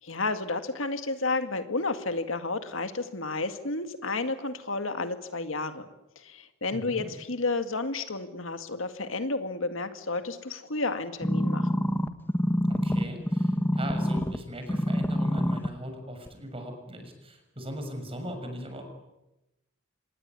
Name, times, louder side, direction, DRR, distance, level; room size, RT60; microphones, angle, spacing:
voice 1, 0.0-5.9 6.2-11.8, left 3 dB, 70° left, 8 dB, 2.0 m, -31 dB
voice 2, 6.7-7.1 12.7-18.8, equal, 30° right, 5 dB, 6.5 m, -39 dB
sound 1, 11.2-14.4 14.7-15.7 16.3-16.4, equal, 10° left, 1.4 m, -26 dB
26.5 x 20.0 x 9.6 m, 0.97 s
head